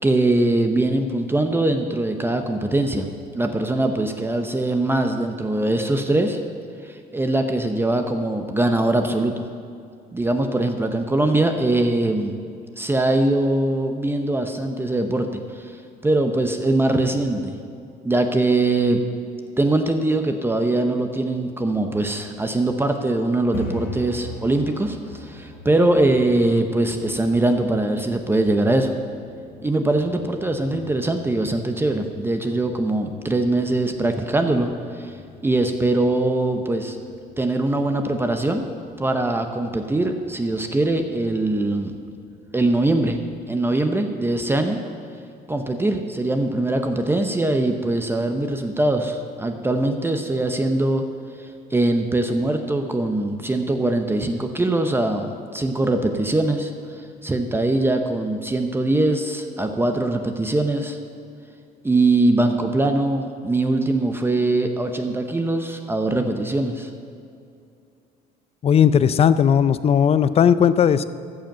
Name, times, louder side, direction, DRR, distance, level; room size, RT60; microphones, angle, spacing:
voice 1, 0.0-3.1 3.3-6.4 6.8-9.4 10.1-12.3 12.8-15.7 16.0-17.6 18.0-19.0 19.6-29.0 29.6-35.1 35.4-37.0 37.4-38.7 39.0-41.9 42.5-43.2 43.5-44.8 45.5-51.1 51.7-61.0 61.8-66.9, right 2 dB, 15° right, 5 dB, 0.7 m, -22 dB
sound 1, 23.3-43.2, left 2 dB, 85° left, 2.6 m, -43 dB
voice 2, 68.6-71.0, left 8 dB, 35° left, 14 dB, 0.4 m, -16 dB
14.0 x 5.2 x 7.7 m, 2.5 s
cardioid pair, 110°, 17 cm